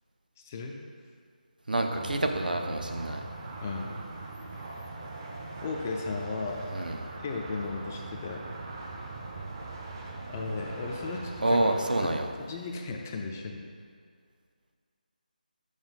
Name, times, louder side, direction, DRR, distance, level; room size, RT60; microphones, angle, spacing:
voice 1, 0.5-0.8 3.6-3.9 5.6-6.7 7.2-8.5 10.3-11.6 12.0-13.7, left 3 dB, 20° left, 2 dB, 0.4 m, -35 dB
voice 2, 1.7-3.2 6.7-7.0 11.4-12.3, right 1 dB, 65° right, 4 dB, 0.7 m, -27 dB
sound 1, 1.9-12.1, right 2 dB, 25° right, 0.6 m, -41 dB
6.3 x 6.1 x 4.1 m, 2.1 s
figure-of-eight pair, 155°, 5 cm